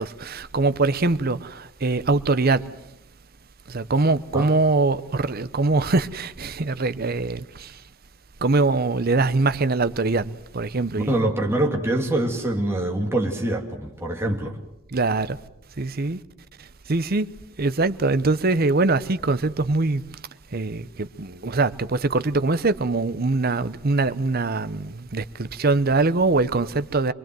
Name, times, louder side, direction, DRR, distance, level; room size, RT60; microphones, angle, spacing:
voice 1, 0.0-2.6 3.7-7.8 8.4-11.2 14.9-15.4 15.8-16.2 16.9-17.3 17.6-20.0 20.5-27.1, right 3 dB, 50° right, 0.8 m, -23 dB
voice 2, 11.0-14.5, right 1 dB, 15° right, 2.6 m, -24 dB
24.5 x 22.5 x 7.7 m
head